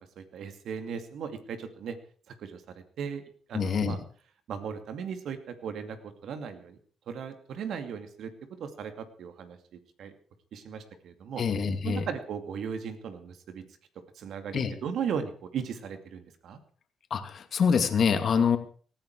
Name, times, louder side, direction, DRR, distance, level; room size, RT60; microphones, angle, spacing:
voice 1, 0.2-2.0 2.3-4.0 4.5-6.8 7.1-8.3 8.6-10.1 10.5-11.4 11.8-13.6 14.1-16.6, right 7 dB, 70° right, 8 dB, 2.5 m, -37 dB
voice 2, 3.5-4.0 11.4-12.0 14.5-14.7 17.1-18.6, left 6 dB, 55° left, 7 dB, 2.6 m, -25 dB
18.5 x 14.5 x 4.8 m, 0.43 s
cardioid pair, 90°, 0 cm